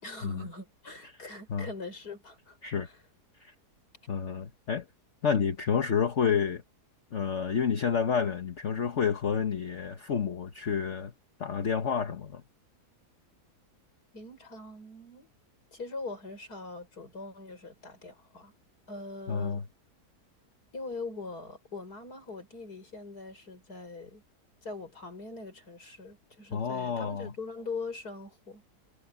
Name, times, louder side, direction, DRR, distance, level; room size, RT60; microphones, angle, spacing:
voice 1, 0.0-2.6 2.8-3.0 14.1-15.3 15.7-18.5 18.9-19.7 20.7-24.2 24.6-28.6, left 3 dB, 70° left, 6.0 m, -42 dB
voice 2, 4.1-4.8 5.2-6.6 7.1-11.1 11.4-12.4 19.3-19.6 26.5-27.3, left 7 dB, 50° left, 1.4 m, -29 dB
omnidirectional pair, 1.8 m